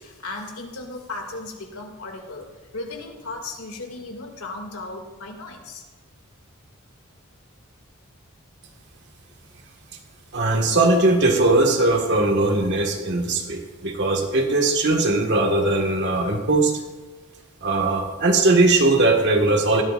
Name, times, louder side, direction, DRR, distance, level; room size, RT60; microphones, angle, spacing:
voice 1, 0.0-2.5 2.7-5.8, left 2 dB, 90° left, 2 dB, 2.5 m, -36 dB
voice 2, 10.3-16.8 17.6-19.8, right 2 dB, 55° right, 2 dB, 1.8 m, -19 dB
18.5 x 15.0 x 2.6 m, 1.3 s
head